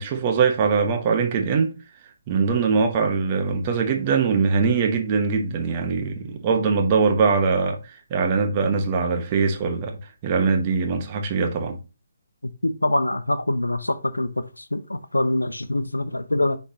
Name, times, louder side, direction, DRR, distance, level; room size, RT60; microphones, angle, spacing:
voice 1, 0.0-1.7 2.3-10.0 10.2-11.8, right 5 dB, 30° right, 1.2 m, -22 dB
voice 2, 12.6-14.3 14.7-16.6, left 1 dB, 85° left, 0.7 m, -24 dB
9.8 x 3.5 x 2.9 m
figure-of-eight pair, 145°, 0 cm